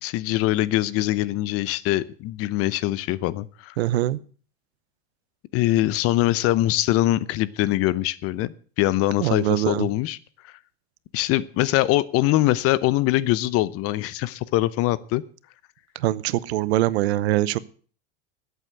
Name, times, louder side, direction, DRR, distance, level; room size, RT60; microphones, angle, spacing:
voice 1, 0.0-3.8 5.5-10.2 10.4-10.5 11.1-15.2, left 16 dB, 45° left, 19 dB, 0.8 m, -23 dB
voice 2, 3.8-4.2 9.2-9.9 15.9-17.6, right 15 dB, 85° right, 18 dB, 0.9 m, -23 dB
12.5 x 8.3 x 7.9 m, 0.42 s
supercardioid pair, 125°, 32 cm